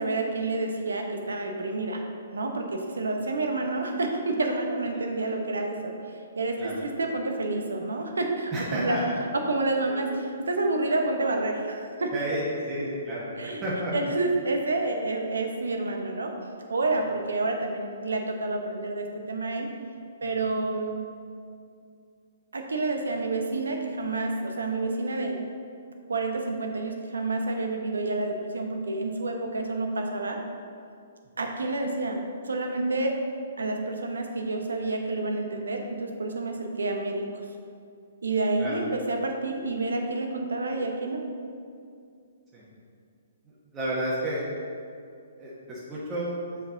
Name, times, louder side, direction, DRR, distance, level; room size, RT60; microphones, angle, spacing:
voice 1, 0.0-2.0 2.3-9.0 9.5-12.1 13.4-13.6 13.9-16.3 16.7-19.7 20.2-21.0 22.5-25.4 26.1-30.4 31.4-33.1 33.6-37.2 38.2-41.2, right 2 dB, 80° right, 3 dB, 0.9 m, -29 dB
voice 2, 8.5-9.0 9.9-10.0 12.1-13.9 20.2-20.4 38.6-38.8 42.5-42.6 43.7-44.4 45.4-46.6, right 1 dB, 20° right, -9 dB, 1.3 m, -31 dB
6.7 x 4.9 x 3.9 m, 2.3 s
figure-of-eight pair, 125°, 0 cm